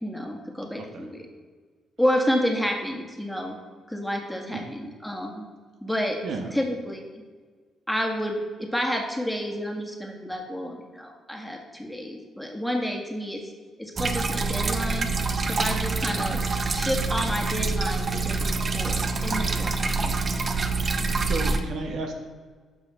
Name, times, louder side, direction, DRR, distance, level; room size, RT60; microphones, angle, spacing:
voice 1, 0.0-1.2 2.0-3.6 3.9-5.5 5.8-6.2 6.5-7.2 7.9-13.4 13.8-15.1 15.4-20.1, equal, ahead, 1 dB, 1.8 m, -30 dB
voice 2, 0.8-1.1 4.5-4.7 6.2-6.5 16.1-16.4 21.2-22.1, right 3 dB, 70° right, 4 dB, 1.6 m, -33 dB
sound 1, 14.0-21.6, right 3 dB, 40° right, 0.9 m, -26 dB
11.5 x 5.6 x 5.7 m, 1.5 s
cardioid pair, 90°, 0 cm